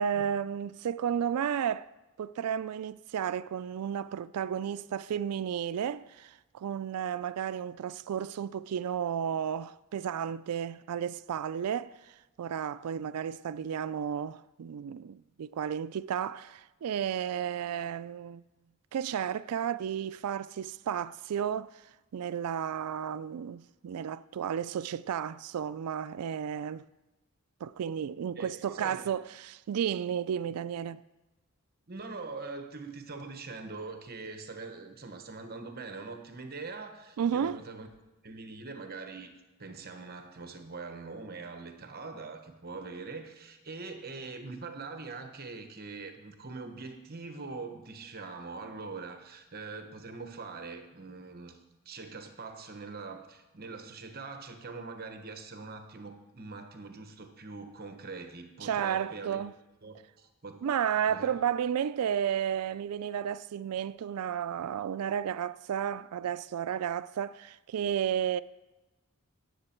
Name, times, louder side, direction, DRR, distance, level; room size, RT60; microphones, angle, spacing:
voice 1, 0.0-1.9 2.2-18.4 18.9-21.7 22.1-26.8 27.6-31.0 37.2-37.6 58.6-59.5 60.6-68.4, right 8 dB, 90° right, 0.4 m, -33 dB
voice 2, 28.3-29.1 31.9-37.9 38.2-39.3 39.6-51.6 51.8-59.4 59.8-60.7 61.1-61.4, right 4 dB, 45° right, 1.1 m, -43 dB
17.5 x 7.8 x 4.4 m
head